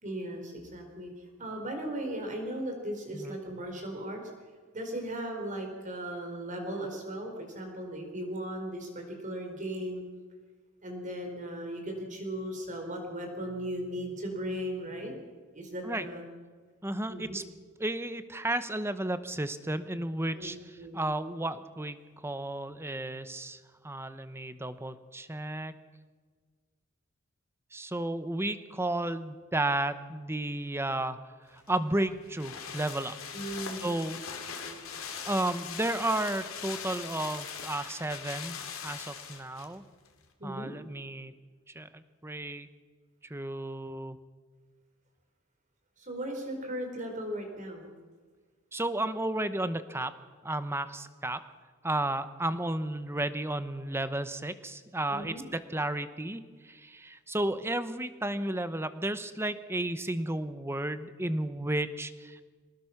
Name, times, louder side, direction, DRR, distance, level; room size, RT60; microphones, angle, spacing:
voice 1, 0.0-4.2 4.7-10.0 10.8-15.1 15.5-16.2 17.1-17.4 20.3-21.0 33.3-33.9 34.6-35.2 40.4-40.7 46.0-47.9 52.5-52.6 55.1-55.5, right 1 dB, 35° right, 3 dB, 4.5 m, -37 dB
voice 2, 16.8-17.4 17.8-20.6 20.9-22.0 22.2-23.6 23.8-25.7 27.7-31.2 31.7-33.1 33.8-34.2 35.2-38.6 38.8-39.8 40.4-41.3 41.7-42.7 43.3-44.2 48.7-50.1 50.4-51.4 51.8-62.4, right 1 dB, 10° right, 12 dB, 0.9 m, -33 dB
sound 1, 31.6-39.7 40.1-40.2, left 7 dB, 70° left, 2.6 m, -41 dB
24.0 x 19.0 x 5.9 m, 1.5 s
head